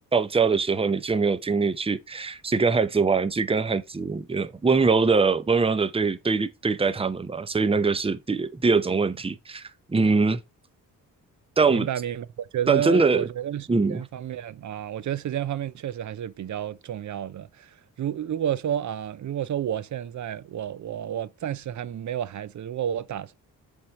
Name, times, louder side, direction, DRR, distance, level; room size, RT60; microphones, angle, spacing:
voice 1, 0.1-10.4 11.6-11.9 12.7-13.3 13.7-14.0, right 4 dB, 15° right, 0.7 m, -23 dB
voice 2, 11.7-23.3, right 10 dB, 55° right, 0.6 m, -31 dB
7.6 x 3.7 x 4.1 m
cardioid pair, 80°, 35 cm